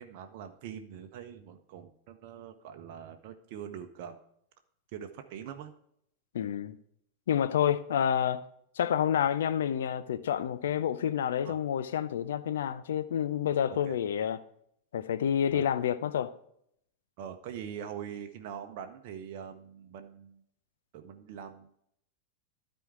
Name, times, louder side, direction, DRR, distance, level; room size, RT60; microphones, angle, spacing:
voice 1, 0.0-4.2 4.9-5.7 11.4-11.6 13.7-14.0 15.5-15.7 17.2-20.4 20.9-21.8, right 8 dB, 45° right, 0.8 m, -43 dB
voice 2, 6.3-6.8 7.3-8.4 8.8-14.4 14.9-16.3, left 9 dB, 60° left, 0.6 m, -29 dB
12.5 x 4.5 x 4.7 m
figure-of-eight pair, 90°, 0 cm